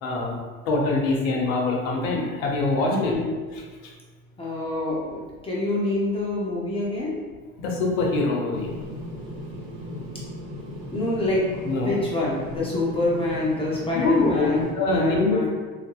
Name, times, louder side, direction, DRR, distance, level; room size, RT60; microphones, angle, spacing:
voice 1, 0.0-0.4 0.7-3.1 7.6-8.7 11.6-12.0 13.9-14.5 14.8-15.5, left 3 dB, 70° left, -1 dB, 0.7 m, -23 dB
voice 2, 2.9-3.3 4.4-7.2 10.9-15.5, left 2 dB, 15° left, -6 dB, 0.5 m, -27 dB
sound 1, 8.5-14.7, equal, 55° right, 1.0 m, -36 dB
2.6 x 2.4 x 2.2 m, 1.4 s
hypercardioid pair, 95°, 41 cm